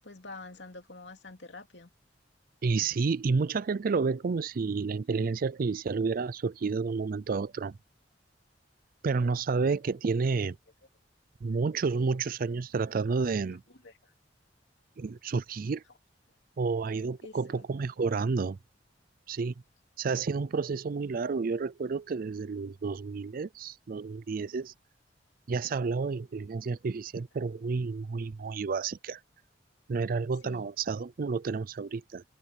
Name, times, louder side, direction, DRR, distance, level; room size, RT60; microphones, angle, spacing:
voice 1, 0.0-1.9 13.8-14.1 17.2-17.6 30.4-30.7, left 3 dB, 75° left, 2.9 m, -47 dB
voice 2, 2.6-7.8 9.0-10.6 11.4-13.6 15.0-15.8 16.6-18.6 19.3-19.5 20.0-24.7 25.5-29.2 29.9-32.2, right 4 dB, 50° right, 0.4 m, -30 dB
open air
head